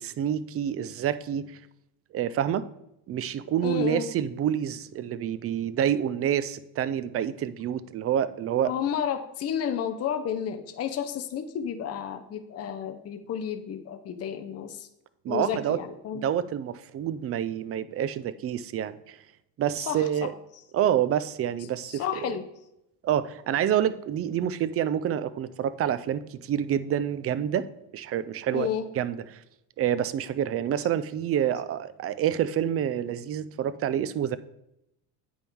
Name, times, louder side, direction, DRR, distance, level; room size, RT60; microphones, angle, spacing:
voice 1, 0.0-1.6 2.1-2.7 3.1-8.7 15.2-15.8 16.1-19.2 19.6-20.3 20.7-22.4 23.0-27.7 27.9-28.7 28.9-29.4 29.8-34.4, right 10 dB, 35° right, 15 dB, 0.4 m, -28 dB
voice 2, 3.6-4.1 8.7-14.9 15.3-16.2 19.9-20.3 21.9-22.5 28.5-28.9, left 8 dB, 35° left, 7 dB, 0.7 m, -31 dB
8.7 x 5.5 x 4.6 m, 0.83 s
cardioid pair, 125°, 44 cm